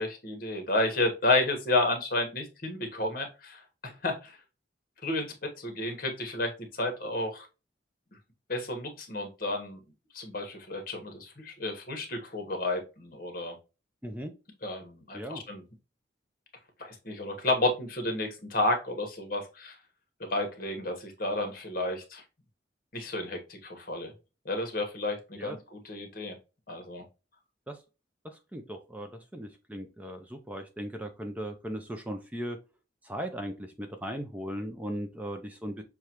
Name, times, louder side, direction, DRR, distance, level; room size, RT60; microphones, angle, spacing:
voice 1, 0.0-4.4 5.0-7.5 8.5-9.8 10.1-13.6 14.6-15.6 16.8-19.8 20.3-22.2 22.9-24.1 24.4-26.3 26.7-27.0, left 2 dB, 50° left, 4 dB, 1.2 m, -31 dB
voice 2, 14.0-14.4 15.1-15.4 25.4-25.6 27.7-27.8 28.2-32.6 33.0-35.8, equal, 10° right, 5 dB, 0.4 m, -38 dB
6.5 x 2.3 x 2.9 m, 0.30 s
head